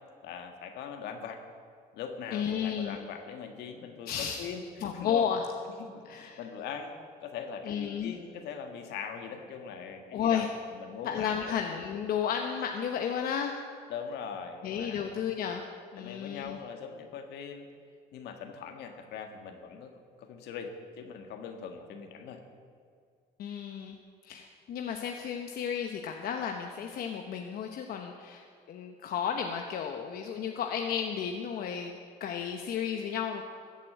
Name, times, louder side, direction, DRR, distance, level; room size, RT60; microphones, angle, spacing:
voice 1, 0.2-1.4 1.9-5.3 5.8-6.9 7.2-10.4 10.7-11.6 13.9-15.1 16.0-17.7 18.1-22.4, left 6 dB, 80° left, 5 dB, 1.7 m, -41 dB
voice 2, 2.3-3.0 4.1-4.5 4.8-5.5 6.0-6.4 7.6-8.1 10.1-10.5 11.0-13.6 14.6-15.6 15.9-16.6 23.4-24.0 24.2-33.4, left 8 dB, 65° left, 3 dB, 1.0 m, -33 dB
14.5 x 8.4 x 8.0 m, 2.2 s
cardioid pair, 110°, 17 cm